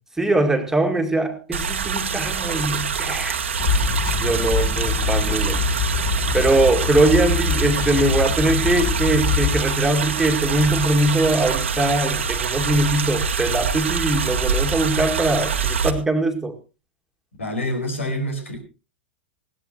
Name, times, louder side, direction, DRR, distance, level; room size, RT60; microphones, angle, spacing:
voice 1, 0.2-3.4 4.2-5.6 6.3-16.6, right 2 dB, 5° right, 4 dB, 2.2 m, -21 dB
sound 1, 1.5-15.9, right 6 dB, 80° right, 1.7 m, -25 dB
sound 2, 3.6-9.6, left 5 dB, 55° left, 5.8 m, -24 dB
voice 2, 17.4-18.6, equal, 85° left, 4 dB, 5.0 m, -26 dB
20.0 x 16.5 x 3.0 m, 0.31 s
hypercardioid pair, 100°, 7 cm